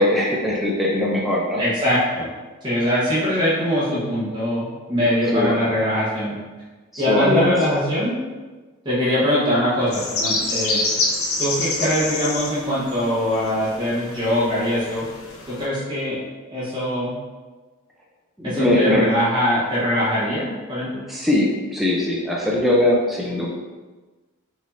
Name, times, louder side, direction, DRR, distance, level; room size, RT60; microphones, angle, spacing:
voice 1, 0.0-1.6 5.3-5.6 6.9-7.5 18.4-19.0 21.1-23.5, left 1 dB, ahead, -4 dB, 0.5 m, -20 dB
voice 2, 1.6-2.3 2.6-6.3 7.0-8.1 8.8-10.8 11.4-15.0 15.5-16.2 16.5-17.1 18.4-21.0, equal, 20° right, -9 dB, 1.2 m, -22 dB
sound 1, 9.9-15.6, left 2 dB, 70° left, 0.8 m, -27 dB
4.5 x 2.8 x 4.1 m, 1.3 s
head